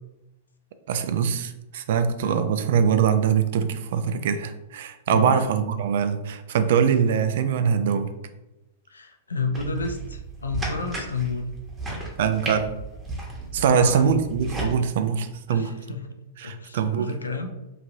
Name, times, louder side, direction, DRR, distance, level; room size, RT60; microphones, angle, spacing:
voice 1, 0.9-8.1 12.2-12.8 13.5-15.7 16.4-17.1, right 7 dB, 60° right, 10 dB, 0.3 m, -23 dB
voice 2, 5.1-5.4 8.9-11.5 13.6-14.1 15.5-16.1 16.4-17.5, left 4 dB, 85° left, 5 dB, 0.4 m, -30 dB
sound 1, 9.5-14.7, right 2 dB, 15° right, 0.9 m, -34 dB
3.0 x 2.6 x 2.5 m, 0.96 s
hypercardioid pair, 105°, 0 cm